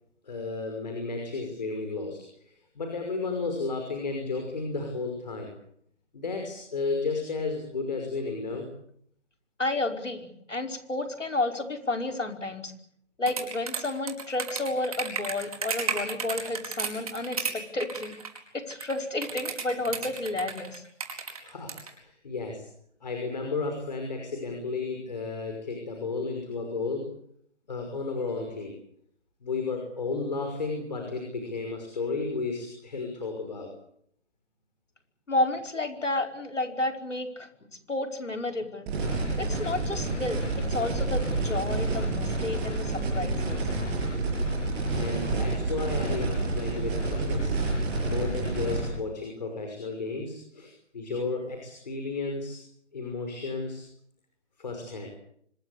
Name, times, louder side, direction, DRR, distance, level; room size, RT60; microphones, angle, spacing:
voice 1, 0.2-5.5 6.1-8.7 21.4-22.7 23.0-27.1 27.7-28.8 29.4-33.7 44.5-44.6 44.9-47.6 48.0-52.6 52.9-53.8 54.6-55.1, left 3 dB, 35° left, 4 dB, 5.8 m, -33 dB
voice 2, 9.6-12.7 13.2-18.1 18.5-20.8 35.3-37.5 37.9-38.9 39.4-40.4 40.7-43.6, left 2 dB, 85° left, 4 dB, 5.3 m, -31 dB
sound 1, 13.3-17.5 17.8-18.4 18.7-21.9, right 5 dB, 30° right, 4.7 m, -32 dB
sound 2, 38.9-48.9, right 2 dB, 10° right, 7.6 m, -29 dB
26.0 x 22.0 x 8.2 m, 0.68 s
figure-of-eight pair, 170°, 36 cm